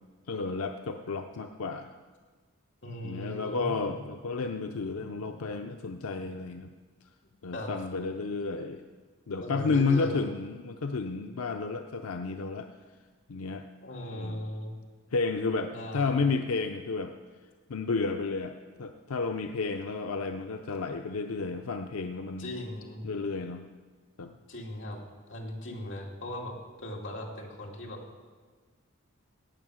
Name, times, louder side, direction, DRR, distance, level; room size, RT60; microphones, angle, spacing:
voice 1, 0.3-1.9 3.0-6.7 7.4-8.8 9.3-12.7 13.3-13.7 14.1-14.5 15.1-17.1 17.7-22.5 23.0-23.6 24.2-24.3, left 4 dB, 90° left, 6 dB, 0.6 m, -31 dB
voice 2, 2.8-3.9 7.5-7.7 9.4-10.2 13.8-14.8 15.7-16.3 22.4-23.1 24.5-25.0 25.3-28.0, left 1 dB, 55° left, -1 dB, 2.3 m, -38 dB
16.5 x 8.6 x 6.3 m, 1.5 s
head